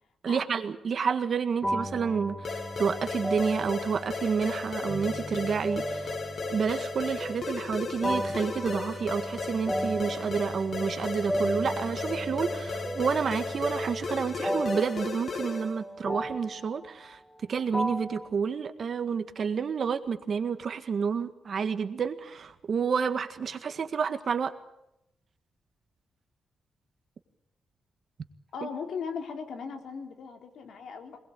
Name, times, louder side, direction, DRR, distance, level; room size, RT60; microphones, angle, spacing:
voice 1, 0.2-6.1 6.5-17.2 17.5-24.5, right 6 dB, 55° right, 9 dB, 1.8 m, -29 dB
sound 1, 1.6-18.3, equal, 15° left, 3.0 m, -35 dB
sound 2, 2.4-15.8, left 4 dB, 55° left, 2.2 m, -36 dB
voice 2, 28.5-31.2, left 6 dB, 75° left, 4 dB, 3.5 m, -38 dB
22.0 x 20.0 x 8.5 m, 0.82 s
cardioid pair, 90°, 0 cm